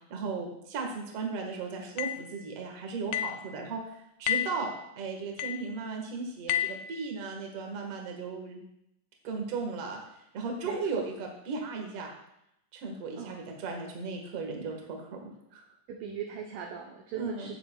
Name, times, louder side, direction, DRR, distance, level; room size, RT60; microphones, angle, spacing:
voice 1, 0.1-8.6 9.2-10.0 10.3-12.1 12.7-15.6 17.1-17.5, right 4 dB, 55° right, 2 dB, 2.0 m, -36 dB
sound 1, 2.0-2.3 3.1-3.4 4.3-4.6 5.4-5.7 6.5-6.9, left 11 dB, 80° left, 1.9 m, -30 dB
voice 2, 10.6-11.0 13.2-13.4 15.9-17.6, right 7 dB, 75° right, 1 dB, 2.0 m, -39 dB
16.5 x 6.8 x 2.3 m, 0.79 s
omnidirectional pair, 4.4 m